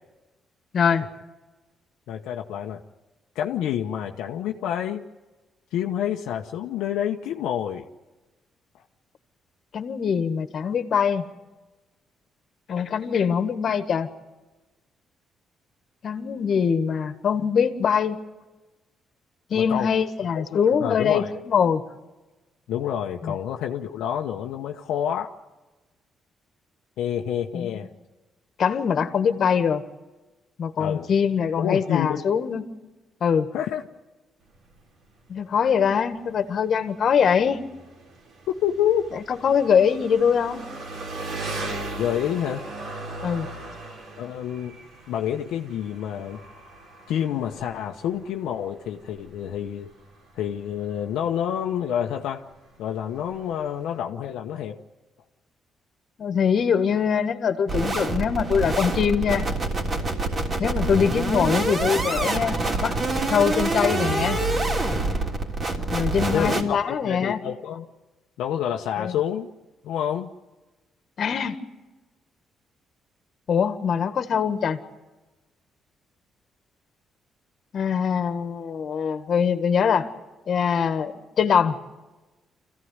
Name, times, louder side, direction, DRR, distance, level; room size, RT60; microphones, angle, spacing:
voice 1, 2.1-2.8 3.3-5.0 5.7-7.9 19.5-19.9 20.3-20.4 20.8-21.3 22.7-25.3 27.0-27.9 30.8-31.1 31.6-32.2 33.5-33.8 38.6-39.0 42.0-42.6 44.2-44.8 45.1-46.4 47.1-49.9 50.4-52.4 52.8-54.8 66.3-67.9 68.4-69.5 69.8-70.3, left 10 dB, 85° left, 2 dB, 1.0 m, -28 dB
voice 2, 9.7-11.2 12.7-14.1 16.0-18.2 19.5-21.8 23.2-23.3 27.5-27.7 28.6-29.8 30.6-32.6 33.2-33.5 35.3-37.6 39.1-40.6 43.2-43.5 56.2-59.5 60.6-62.9 63.3-64.4 65.9-67.4 69.0-69.1 71.2-71.6 73.5-74.8 77.7-80.1 80.5-81.8, left 7 dB, 55° left, 9 dB, 1.7 m, -23 dB
Engine, 34.4-54.0, right 2 dB, 70° right, 4.5 m, -39 dB
sound 1, 57.7-66.6, right 2 dB, 40° right, 3.3 m, -26 dB
25.5 x 15.5 x 9.6 m, 1.2 s
cardioid pair, 90°, 0 cm